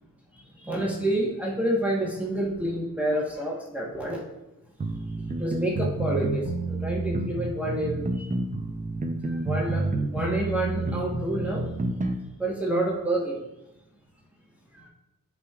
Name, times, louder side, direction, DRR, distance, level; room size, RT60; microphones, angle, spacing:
voice 1, 0.6-4.2 5.4-8.3 9.2-11.6 12.4-13.4 14.7-14.9, right 1 dB, 5° right, -4 dB, 1.3 m, -28 dB
sound 1, 4.8-12.2, right 2 dB, 25° right, 0.6 m, -29 dB
11.5 x 5.1 x 2.4 m, 0.92 s
wide cardioid pair, 145°, 34 cm